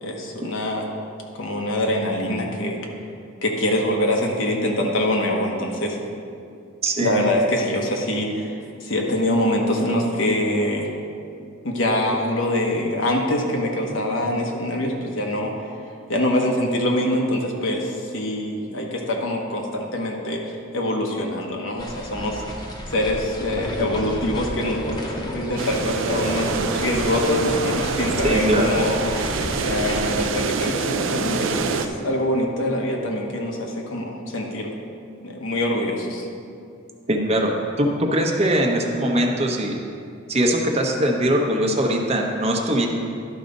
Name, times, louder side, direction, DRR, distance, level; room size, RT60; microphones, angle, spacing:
voice 1, 0.0-0.9 1.4-2.8 3.4-6.0 7.0-8.5 8.8-10.9 11.6-15.5 16.1-22.4 22.9-34.7 35.2-36.3, left 1 dB, 90° left, 0 dB, 1.2 m, -24 dB
voice 2, 6.8-7.2 28.2-28.7 37.1-39.8 40.3-42.9, right 1 dB, 35° right, 1 dB, 0.9 m, -21 dB
sound 1, 21.8-30.3, left 1 dB, 20° left, 0.9 m, -32 dB
sound 2, 25.6-31.9, right 4 dB, 85° right, 0.5 m, -26 dB
11.5 x 4.1 x 5.3 m, 2.4 s
head